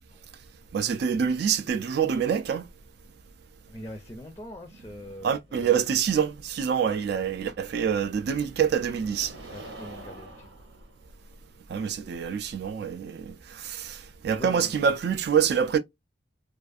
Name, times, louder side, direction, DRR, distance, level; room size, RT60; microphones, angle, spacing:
voice 1, 0.7-2.7 5.2-9.3 11.7-15.8, right 7 dB, 65° right, 0.3 m, -26 dB
voice 2, 3.7-5.8 9.5-10.5 14.2-14.8, left 1 dB, 15° left, 0.4 m, -43 dB
sound 1, 4.8-13.6, right 2 dB, 85° right, 1.0 m, -49 dB
2.5 x 2.4 x 2.3 m
head